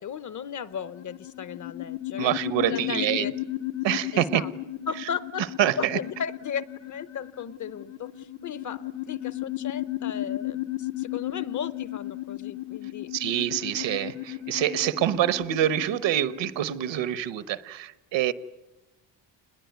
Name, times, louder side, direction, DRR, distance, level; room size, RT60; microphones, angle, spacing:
voice 1, 0.0-2.3 2.6-3.3 4.1-4.5 4.9-5.4 5.8-13.1, left 7 dB, 40° left, 0.9 m, -35 dB
sound 1, 0.7-17.0, left 16 dB, 80° left, 1.5 m, -35 dB
voice 2, 2.2-3.3 3.8-4.4 5.6-6.0 13.1-18.3, right 11 dB, 70° right, 1.2 m, -26 dB
29.0 x 21.0 x 9.4 m
cardioid pair, 170°, 46 cm